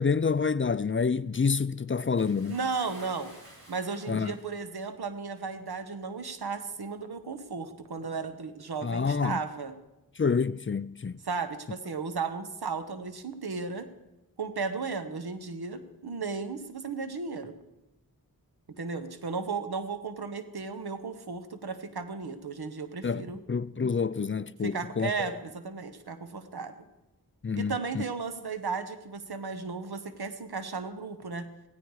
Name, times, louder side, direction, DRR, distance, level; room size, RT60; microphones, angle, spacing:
voice 1, 0.0-2.6 4.1-4.3 8.8-9.4 10.2-11.2 23.0-25.3 27.4-28.0, left 5 dB, 35° left, 0.5 m, -28 dB
Bathtub (filling or washing) / Splash splatter, 2.2-4.8 5.7-5.8 6.8-6.9, right 1 dB, 75° right, 4.9 m, -52 dB
voice 2, 2.5-3.3 3.7-9.7 11.2-13.9 14.4-17.5 18.8-23.4 24.6-26.7 27.6-31.5, right 4 dB, 90° right, 1.1 m, -35 dB
16.5 x 16.0 x 4.8 m
wide cardioid pair, 45°, 37 cm